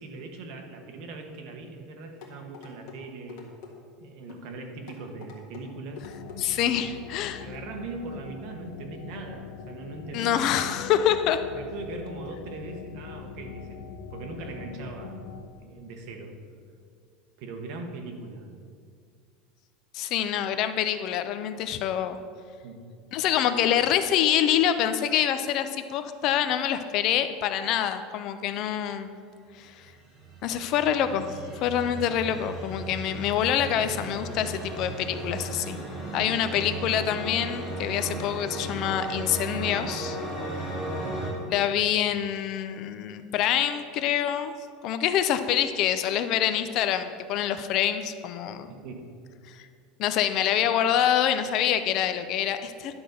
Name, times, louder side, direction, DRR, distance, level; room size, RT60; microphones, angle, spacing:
voice 1, 0.0-3.5 4.0-6.0 7.4-10.3 11.5-13.8 14.1-15.2 15.6-16.4 17.4-18.5 22.6-22.9 36.2-36.5 40.9-41.3 48.7-49.1, right 3 dB, 50° right, 3 dB, 1.2 m, -40 dB
sound 1, 2.2-3.0 3.3-3.7 4.3-4.5 4.9-5.6 6.0-6.4 7.0-7.1 7.5-7.6, left 7 dB, 60° left, 1.8 m, -45 dB
sound 2, 6.0-15.5, left 6 dB, 75° left, 0.7 m, -42 dB
voice 2, 6.4-7.5 10.1-11.4 19.9-22.2 23.1-29.1 29.6-29.7 30.4-31.3 31.6-35.8 36.1-40.2 41.5-44.5 44.8-48.7 49.5-49.6 50.0-52.9, left 10 dB, 45° left, 10 dB, 0.5 m, -26 dB
sound 3, 29.7-41.3, right 2 dB, ahead, 2.4 m, -36 dB
11.0 x 3.9 x 6.9 m, 2.2 s
supercardioid pair, 160°, 0 cm